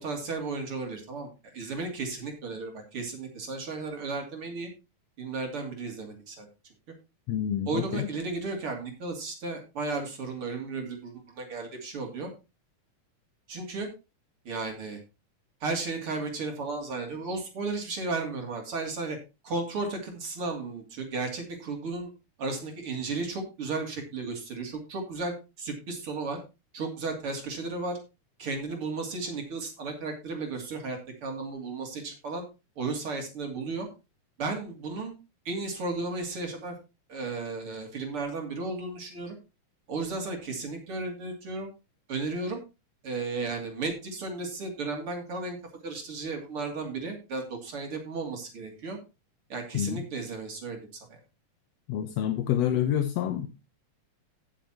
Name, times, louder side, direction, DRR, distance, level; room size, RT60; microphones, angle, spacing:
voice 1, 0.0-1.3 1.5-4.7 5.2-6.5 7.7-12.3 13.5-13.9 14.4-15.0 15.6-19.2 19.4-22.1 22.4-26.4 26.7-28.0 28.4-32.4 32.8-33.9 34.4-35.1 35.4-36.7 37.1-39.3 39.9-41.7 42.1-42.6 43.0-45.6 45.8-49.0 49.5-50.8 51.1-51.2, right 3 dB, 45° right, 3 dB, 3.4 m, -34 dB
voice 2, 7.3-8.0 49.7-50.0 51.9-53.5, left 10 dB, 65° left, 7 dB, 1.8 m, -27 dB
16.0 x 7.1 x 2.9 m, 0.27 s
omnidirectional pair, 3.5 m